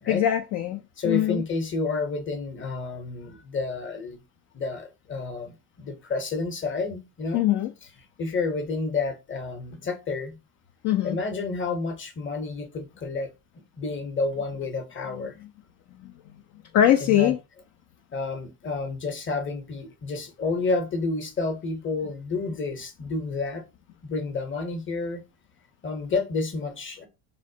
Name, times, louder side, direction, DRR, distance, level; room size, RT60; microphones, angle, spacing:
voice 1, 0.1-1.4 7.3-7.7 10.8-11.2 16.0-16.1 16.7-17.4, left 11 dB, 40° left, 0.5 m, -22 dB
voice 2, 1.0-4.2 4.5-7.4 8.2-10.4 11.0-13.3 13.8-15.4 17.1-17.3 18.1-23.6 24.0-25.2 25.8-27.1, left 3 dB, 25° left, 0.9 m, -30 dB
3.8 x 2.1 x 2.7 m
supercardioid pair, 85°, 48 cm